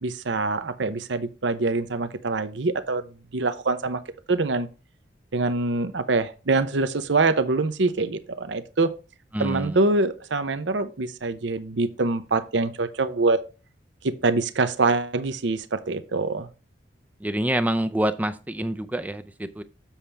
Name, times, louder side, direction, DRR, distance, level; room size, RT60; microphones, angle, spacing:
voice 1, 0.0-3.1 3.3-4.0 4.3-4.7 5.3-8.9 9.4-13.4 14.0-16.5, right 3 dB, 70° right, 12 dB, 0.7 m, -24 dB
voice 2, 9.3-9.8 17.2-19.6, right 1 dB, 10° right, 10 dB, 0.4 m, -26 dB
7.2 x 7.1 x 3.4 m, 0.33 s
head